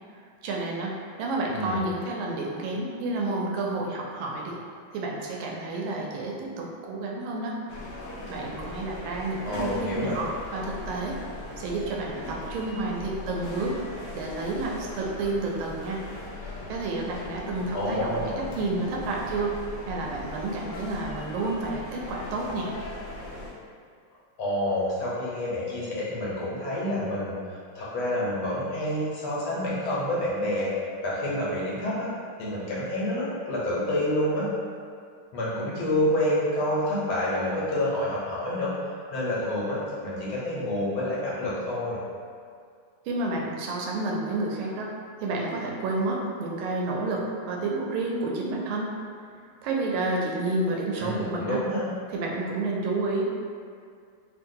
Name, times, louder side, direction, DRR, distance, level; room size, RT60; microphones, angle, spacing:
voice 1, 0.4-4.6 4.9-7.6 8.3-11.2 11.6-16.0 16.7-19.6 19.9-22.7 43.1-44.9 45.2-48.9 49.6-51.6 52.1-53.2, right 2 dB, 90° right, -1 dB, 1.4 m, -30 dB
voice 2, 1.4-1.8 9.5-10.2 17.7-18.4 24.4-27.4 27.8-30.7 31.0-32.1 32.4-34.5 35.3-38.7 39.1-42.0 51.0-51.9, left 1 dB, 85° left, -7 dB, 1.7 m, -28 dB
sound 1, 7.7-23.5, left 2 dB, 70° left, 1.0 m, -39 dB
3.7 x 2.4 x 2.6 m, 2.2 s
omnidirectional pair, 2.2 m